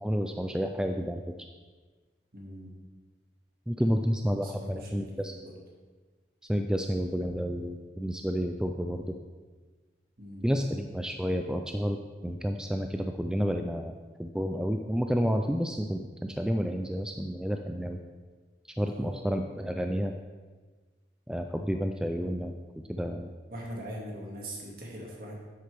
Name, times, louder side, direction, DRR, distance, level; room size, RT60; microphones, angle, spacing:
voice 1, 0.0-1.2 3.7-5.3 6.5-9.2 10.4-12.0 12.2-18.0 18.8-20.1 21.3-22.5 22.9-23.3, equal, 5° right, 5 dB, 0.3 m, -30 dB
voice 2, 2.3-2.7 3.8-5.6 10.2-10.5 19.0-19.2 23.5-25.4, equal, 55° right, -1 dB, 2.0 m, -42 dB
10.0 x 8.1 x 3.4 m, 1.4 s
head